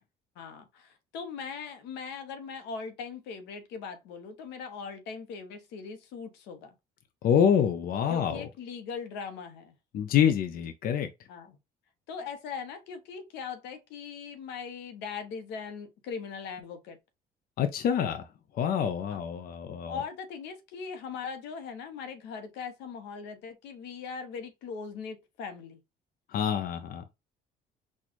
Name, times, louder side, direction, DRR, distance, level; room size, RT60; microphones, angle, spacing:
voice 1, 0.4-6.7 8.1-9.7 11.3-11.6 12.1-17.0 19.1-19.2 19.9-25.8, left 6 dB, 85° left, 0.9 m, -40 dB
voice 2, 7.2-8.5 9.9-11.1 17.6-18.3 18.5-20.0 26.3-27.0, left 8 dB, 55° left, 0.6 m, -26 dB
4.3 x 2.4 x 3.0 m
cardioid pair, 100°, 18 cm